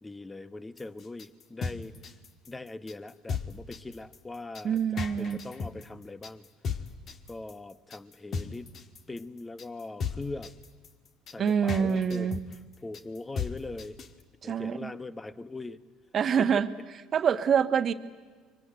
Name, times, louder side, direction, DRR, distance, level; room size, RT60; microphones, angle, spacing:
voice 1, 0.0-2.0 2.5-6.4 7.3-8.7 9.1-10.5 11.3-12.3 12.8-14.0 14.4-15.8 16.4-16.5, left 2 dB, 15° left, 14 dB, 1.1 m, -41 dB
sound 1, 0.8-14.2, left 5 dB, 50° left, 1.6 m, -36 dB
voice 2, 4.6-5.4 11.4-12.4 14.4-14.9 16.1-16.7 17.1-17.9, right 7 dB, 45° right, 10 dB, 1.3 m, -26 dB
24.0 x 23.5 x 9.0 m, 1.4 s
hypercardioid pair, 70°, 0 cm